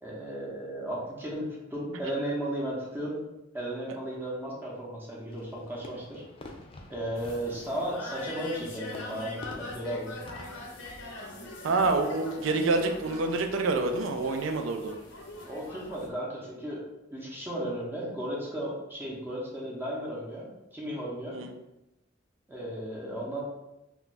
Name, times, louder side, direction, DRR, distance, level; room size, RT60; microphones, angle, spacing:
voice 1, 0.0-3.2 3.5-6.2 6.9-10.2 15.4-20.5 20.7-21.4 22.5-23.4, right 1 dB, 10° right, -4 dB, 0.6 m, -35 dB
Fireworks, 5.3-11.4, left 2 dB, 30° left, 0.3 m, -49 dB
sound 1, 7.2-16.1, left 2 dB, 75° left, 0.6 m, -42 dB
voice 2, 11.6-14.9 21.3-21.5, right 3 dB, 75° right, 5 dB, 0.4 m, -27 dB
2.3 x 2.2 x 3.9 m, 0.92 s
head